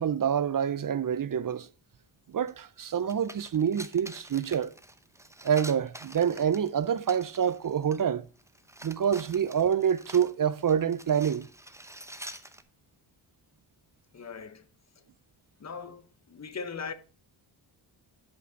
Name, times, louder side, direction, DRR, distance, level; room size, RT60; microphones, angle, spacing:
voice 1, 0.0-1.7 2.3-4.7 5.4-8.3 8.8-11.5, right 8 dB, 45° right, 0.5 m, -27 dB
sound 1, 2.5-2.6 2.9-8.0 8.4-12.6, right 1 dB, 5° right, 0.8 m, -47 dB
voice 2, 14.1-14.7 15.6-16.9, left 5 dB, 35° left, 0.9 m, -39 dB
8.5 x 5.2 x 5.6 m
cardioid pair, 80°, 47 cm